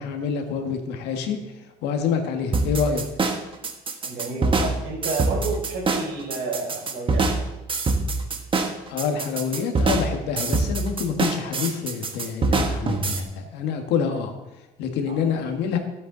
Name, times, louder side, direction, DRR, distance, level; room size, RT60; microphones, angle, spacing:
voice 1, 0.0-1.4 1.8-3.1 8.9-14.3 14.8-15.8, left 6 dB, 90° left, 4 dB, 1.7 m, -27 dB
sound 1, 2.5-13.2, right 3 dB, 30° right, 1.5 m, -24 dB
voice 2, 4.0-7.3 15.1-15.5, right 3 dB, 65° right, -1 dB, 4.3 m, -31 dB
16.0 x 8.7 x 4.0 m, 1.0 s
cardioid pair, 110°, 17 cm